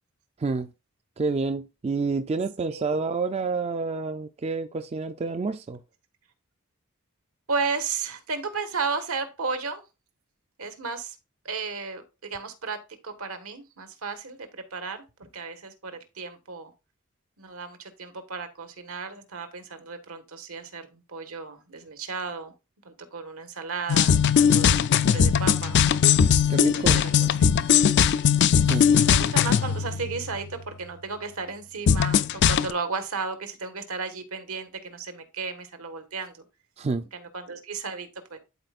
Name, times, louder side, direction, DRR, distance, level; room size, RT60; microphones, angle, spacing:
voice 1, 1.2-5.8 26.5-27.0 28.7-28.8 36.8-37.0, right 4 dB, 30° right, 0.3 m, -28 dB
voice 2, 7.5-9.8 10.6-11.2 11.4-16.7 17.4-22.5 22.8-24.8 25.0-25.8 26.7-27.3 28.9-36.4 37.1-38.4, right 4 dB, 80° right, 1.3 m, -34 dB
sound 1, 23.9-30.5 31.9-32.7, left 7 dB, 55° left, 0.4 m, -20 dB
12.0 x 4.2 x 2.4 m
head